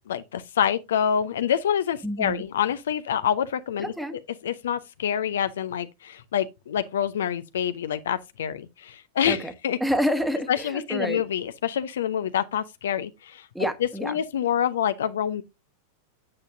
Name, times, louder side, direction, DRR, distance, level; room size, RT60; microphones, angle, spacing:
voice 1, 0.1-3.9 4.4-9.8 10.5-13.5 14.0-15.4, left 9 dB, 60° left, 0.6 m, -26 dB
voice 2, 2.0-2.4 3.8-4.2 9.3-9.5 9.8-11.2 13.5-14.1, equal, ahead, 1.3 m, -28 dB
8.6 x 8.0 x 2.6 m
figure-of-eight pair, 90°, 0 cm